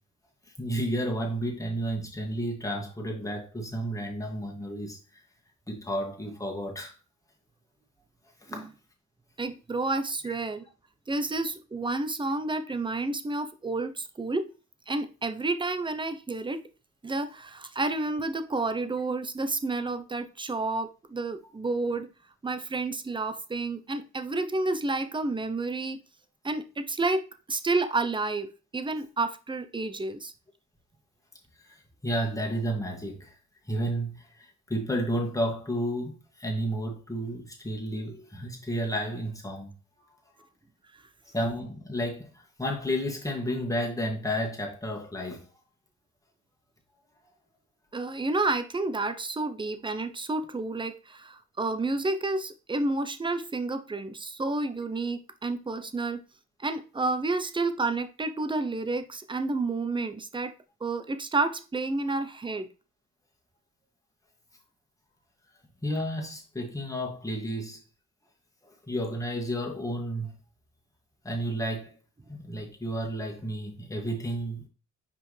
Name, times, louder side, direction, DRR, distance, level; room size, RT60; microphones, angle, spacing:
voice 1, 0.6-5.2 5.7-6.9 8.5-8.7 31.6-31.8 32.0-33.3 33.7-39.7 41.3-45.5 62.1-62.2 65.8-67.8 68.6-70.4 71.2-71.9 72.3-74.6, equal, 10° left, 2.2 m, -32 dB
voice 2, 9.4-10.6 11.1-14.5 14.9-16.7 17.0-22.1 22.4-26.0 26.4-30.3 47.9-56.2 56.6-60.5 60.8-62.7, right 3 dB, 15° right, 0.7 m, -30 dB
5.9 x 5.0 x 3.3 m
cardioid pair, 90°, 30 cm